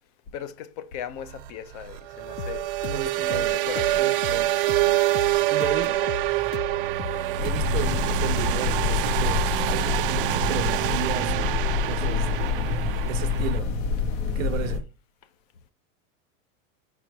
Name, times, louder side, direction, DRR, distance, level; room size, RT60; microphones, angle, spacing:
voice 1, 0.3-2.7 3.0-4.1 5.1-6.1 12.0-12.1 14.3-14.8, left 9 dB, 30° left, 0.5 m, -39 dB
sound 1, 1.2-13.6, right 14 dB, 45° right, 0.4 m, -26 dB
sound 2, 2.4-9.6, left 9 dB, 85° left, 0.5 m, -37 dB
voice 2, 2.8-3.6 3.9-4.5 5.5-6.0 7.4-12.3 13.1-13.7 14.3-14.9, right 11 dB, 75° right, 0.9 m, -34 dB
sound 3, 7.4-14.8, left 5 dB, 65° left, 1.5 m, -27 dB
5.1 x 4.5 x 4.5 m
supercardioid pair, 170°, 39 cm